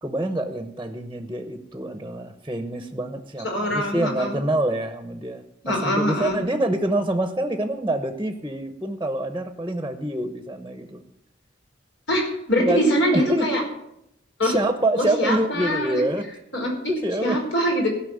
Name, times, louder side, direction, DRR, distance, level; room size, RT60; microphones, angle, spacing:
voice 1, 0.0-11.0 12.6-13.5 14.4-16.2 16.9-17.4, right 1 dB, 10° right, 7 dB, 0.9 m, -26 dB
voice 2, 3.4-4.4 5.6-6.4 12.1-13.6 14.4-14.5 14.9-16.0 16.5-16.7 17.2-17.9, equal, 75° left, 0 dB, 5.0 m, -23 dB
16.5 x 5.8 x 8.1 m, 0.79 s
head